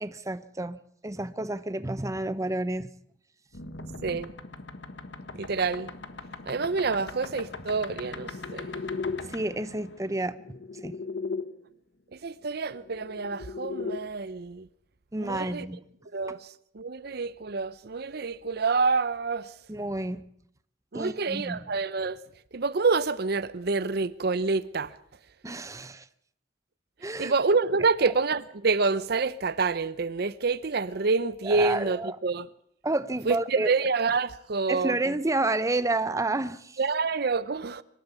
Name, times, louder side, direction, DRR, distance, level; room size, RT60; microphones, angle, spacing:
voice 1, 0.0-2.9 9.3-11.0 15.1-15.8 19.7-20.2 20.9-21.6 25.4-26.1 27.0-27.3 31.4-32.2 32.8-33.7 34.7-36.8, right 2 dB, 20° right, 0.8 m, -30 dB
sound 1, 3.5-11.4 12.7-14.0, left 4 dB, 80° left, 1.5 m, -38 dB
voice 2, 4.0-4.3 5.3-5.9 6.5-8.7 12.1-14.7 15.2-15.7 16.1-16.4 16.7-19.5 20.9-22.2 22.5-24.9 27.2-32.5 33.3-35.0 36.8-37.8, right 4 dB, 60° right, 0.7 m, -27 dB
24.5 x 12.5 x 8.4 m
head